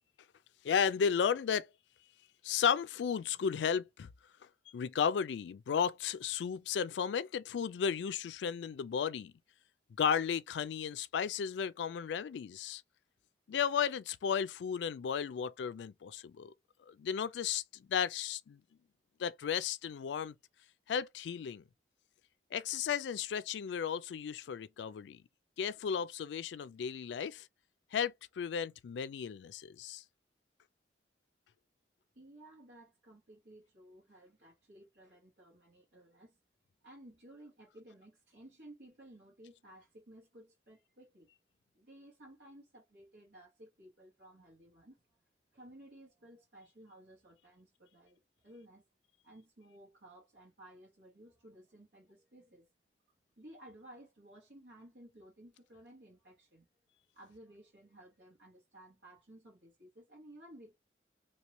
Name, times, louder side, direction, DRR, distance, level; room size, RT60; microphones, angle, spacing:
voice 1, 0.6-1.7 2.4-4.1 4.7-9.3 10.0-12.8 13.5-16.5 16.9-18.6 19.2-20.4 20.9-21.6 22.5-25.2 25.6-27.5 27.9-30.0, left 7 dB, 85° left, 0.3 m, -34 dB
voice 2, 32.1-36.4 36.8-41.3 41.7-45.2 45.5-48.8 49.2-52.7 53.4-56.7 57.1-60.8, right 1 dB, 85° right, 1.4 m, -56 dB
3.1 x 2.8 x 3.0 m
head